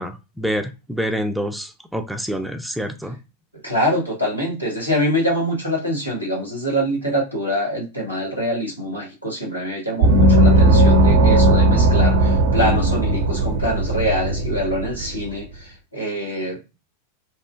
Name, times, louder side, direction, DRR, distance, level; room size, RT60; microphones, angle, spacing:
voice 1, 0.0-3.2, equal, ahead, 7 dB, 0.3 m, -27 dB
voice 2, 3.6-16.8, equal, 90° left, -3 dB, 1.1 m, -24 dB
Gong, 10.0-15.3, right 1 dB, 55° right, 0.5 m, -16 dB
2.9 x 2.4 x 2.3 m, 0.27 s
figure-of-eight pair, 90°, 0 cm